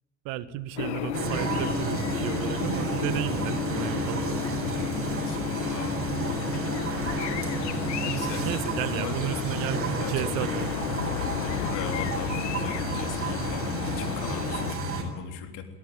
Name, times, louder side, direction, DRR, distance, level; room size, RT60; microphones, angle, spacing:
voice 1, 0.2-4.4 7.9-10.7, right 12 dB, 65° right, 14 dB, 1.4 m, -33 dB
sound 1, 0.8-14.8, left 12 dB, 80° left, 1.2 m, -33 dB
sound 2, 1.1-15.0, right 4 dB, 40° right, 7.5 m, -32 dB
sound 3, 1.4-8.6, left 1 dB, 10° left, 2.0 m, -36 dB
voice 2, 5.2-6.0 8.0-8.5 8.9-9.5 10.0-10.3 11.5-15.7, left 7 dB, 60° left, 5 dB, 3.5 m, -39 dB
22.5 x 17.5 x 9.4 m, 1.3 s
hypercardioid pair, 70°, 34 cm